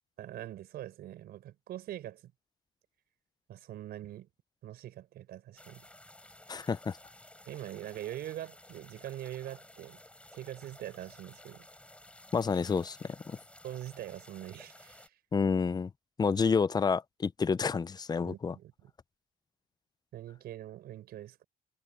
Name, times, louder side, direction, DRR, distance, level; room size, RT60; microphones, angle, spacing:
voice 1, 0.2-2.3 3.5-4.3 4.6-5.9 7.5-10.0 10.3-11.7 13.6-15.2 18.2-18.9 20.1-21.4, right 13 dB, 70° right, 4.7 m, -43 dB
sound 1, 5.6-15.1, left 1 dB, 5° left, 6.1 m, -55 dB
voice 2, 6.5-7.0 12.3-13.0 15.3-15.9 16.2-18.5, left 5 dB, 25° left, 0.6 m, -29 dB
cardioid pair, 110°, 17 cm